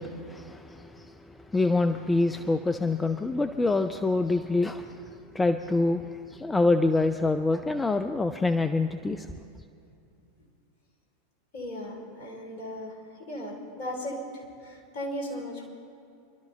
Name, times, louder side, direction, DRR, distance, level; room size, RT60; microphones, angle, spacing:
voice 1, 0.0-9.4, left 2 dB, 10° left, 8 dB, 0.5 m, -26 dB
voice 2, 11.5-12.9 13.3-15.7, equal, 50° left, 0 dB, 3.6 m, -36 dB
26.0 x 12.5 x 3.3 m, 2.5 s
figure-of-eight pair, 85°, 0 cm